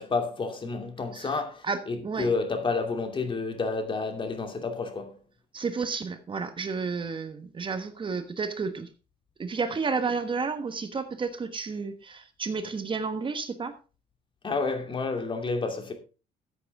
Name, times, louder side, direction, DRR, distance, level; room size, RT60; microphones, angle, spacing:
voice 1, 0.0-5.2 14.4-15.9, left 4 dB, 30° left, 2.6 m, -30 dB
voice 2, 1.6-2.3 5.5-8.9 9.4-13.8, right 4 dB, 30° right, 1.3 m, -31 dB
14.0 x 7.9 x 3.5 m
cardioid pair, 110°, 17 cm